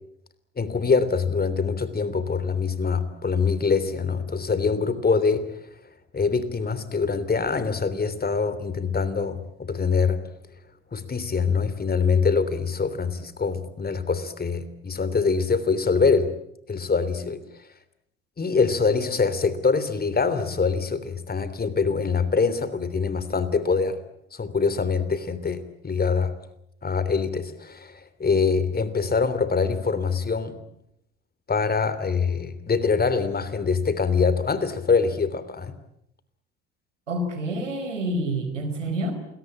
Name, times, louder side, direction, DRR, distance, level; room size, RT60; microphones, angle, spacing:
voice 1, 0.6-5.7 6.1-10.2 10.9-16.3 16.7-17.4 18.4-24.0 24.3-26.3 26.8-30.6 31.5-35.7, left 5 dB, 25° left, 14 dB, 3.2 m, -24 dB
voice 2, 37.1-39.1, right 1 dB, 85° right, 8 dB, 4.6 m, -28 dB
29.0 x 22.0 x 8.6 m, 0.76 s
figure-of-eight pair, 60°, 36 cm